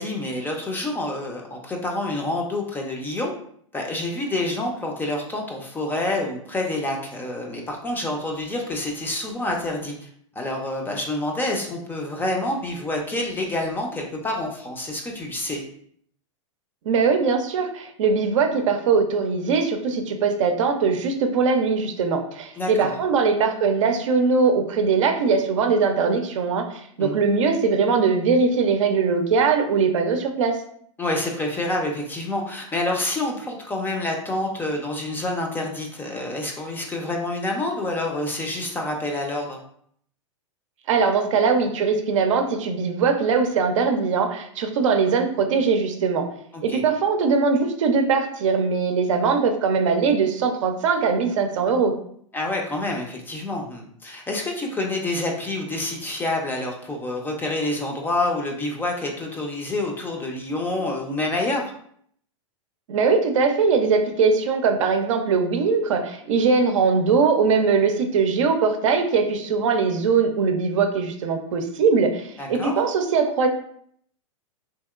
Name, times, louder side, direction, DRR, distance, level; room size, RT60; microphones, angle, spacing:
voice 1, 0.0-3.3 3.7-10.1 10.4-15.6 22.6-22.9 27.0-27.2 31.0-39.6 46.5-46.8 52.3-61.6 72.4-72.7, left 2 dB, 10° left, 1 dB, 0.5 m, -27 dB
voice 2, 16.9-30.6 40.9-46.2 46.6-51.9 62.9-73.5, right 5 dB, 70° right, 5 dB, 0.5 m, -21 dB
2.8 x 2.8 x 2.3 m, 0.65 s
hypercardioid pair, 120°, 17 cm